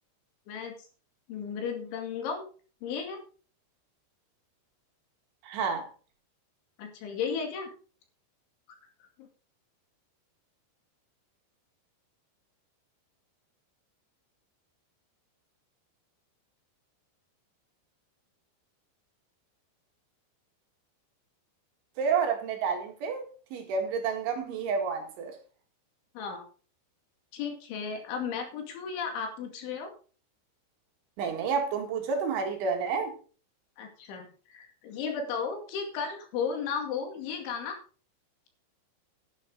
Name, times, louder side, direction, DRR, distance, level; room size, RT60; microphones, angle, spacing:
voice 1, 1.3-2.5 2.8-3.2 6.8-7.7 9.2-9.3 26.1-26.4 27.3-29.9 33.8-37.8, left 6 dB, 70° left, 4.7 m, -34 dB
voice 2, 5.4-5.8 22.0-25.4 31.2-33.1, right 5 dB, 70° right, 4.4 m, -30 dB
11.5 x 11.5 x 4.0 m
omnidirectional pair, 5.8 m